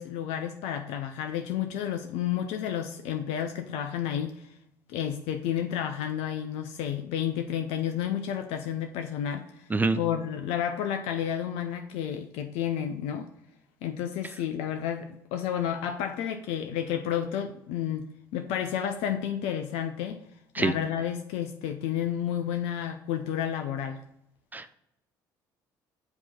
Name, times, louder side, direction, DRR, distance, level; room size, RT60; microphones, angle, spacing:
voice 1, 0.0-4.4 4.9-9.7 9.9-13.3 13.8-20.2 20.6-24.0, left 9 dB, 65° left, 7 dB, 0.4 m, -31 dB
voice 2, 9.7-10.0 20.6-20.7 24.5-24.7, right 3 dB, 15° right, 13 dB, 0.4 m, -25 dB
7.7 x 2.9 x 4.3 m, 0.80 s
hypercardioid pair, 55°, 11 cm